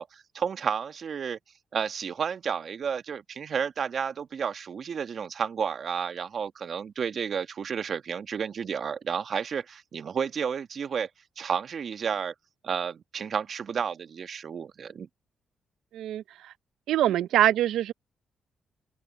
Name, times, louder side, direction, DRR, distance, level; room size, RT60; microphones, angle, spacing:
voice 1, 0.0-1.4 1.7-11.1 11.4-12.3 12.6-15.1, right 7 dB, 60° right, 1.6 m, -31 dB
voice 2, 16.9-17.9, right 12 dB, 85° right, 0.5 m, -23 dB
open air
supercardioid pair, 65°, 0 cm